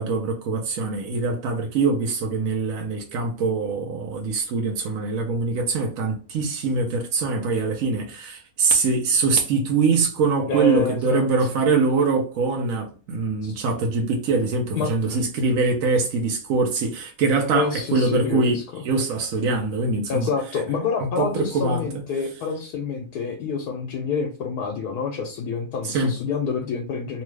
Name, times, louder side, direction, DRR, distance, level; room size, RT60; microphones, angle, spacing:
voice 1, 0.0-18.6 18.8-20.3 21.0-21.8 25.8-26.2, right 4 dB, 65° right, 1.0 m, -23 dB
voice 2, 10.5-11.2 13.4-13.6 14.7-15.2 17.5-18.8 20.1-27.2, left 5 dB, 80° left, 1.1 m, -27 dB
3.0 x 2.3 x 3.1 m
omnidirectional pair, 1.6 m